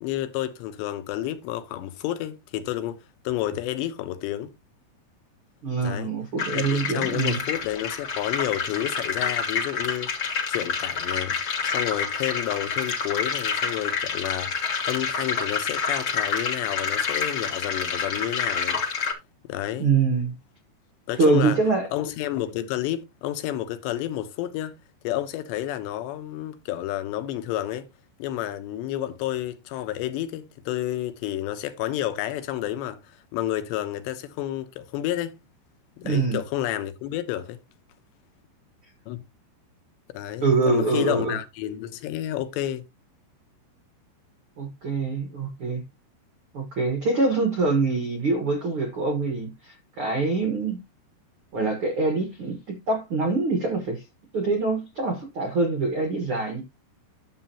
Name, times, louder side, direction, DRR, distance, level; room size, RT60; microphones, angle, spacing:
voice 1, 0.0-4.5 5.8-6.1 6.5-10.1 10.5-11.4 11.6-18.8 19.4-19.9 21.1-21.6 21.9-24.8 25.0-27.9 28.2-35.3 36.0-37.6 39.1-39.2 40.1-42.9, left 13 dB, 85° left, 3.2 m, -30 dB
voice 2, 5.6-7.4 19.8-20.3 21.2-21.9 36.0-36.4 40.4-41.4 44.6-45.8 46.5-50.8 51.5-54.0 54.3-56.6, right 3 dB, 85° right, 1.1 m, -24 dB
sound 1, 6.4-19.1, left 5 dB, 50° left, 1.5 m, -28 dB
11.0 x 7.5 x 2.9 m
omnidirectional pair, 5.0 m